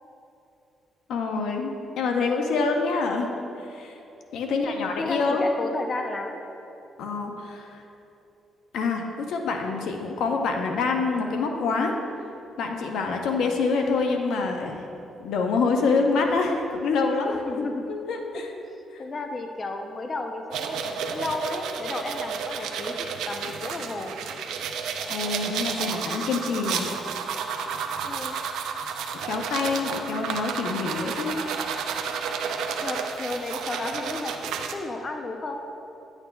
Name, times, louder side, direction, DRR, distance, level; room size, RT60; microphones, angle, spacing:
voice 1, 1.1-3.3 3.7-3.9 4.3-5.5 7.0-7.8 8.7-11.9 12.6-14.8 15.2-18.5 18.9-19.0 25.1-27.0 29.2-31.4, left 4 dB, 80° left, 3 dB, 0.7 m, -26 dB
voice 2, 4.4-6.4 17.5-17.9 18.6-24.1 28.0-28.3 32.8-35.6, left 2 dB, 35° left, 4 dB, 0.5 m, -33 dB
sound 1, 20.5-34.7, right 6 dB, 85° right, 0.5 m, -31 dB
10.5 x 8.2 x 2.3 m, 2.8 s
cardioid pair, 90°, 0 cm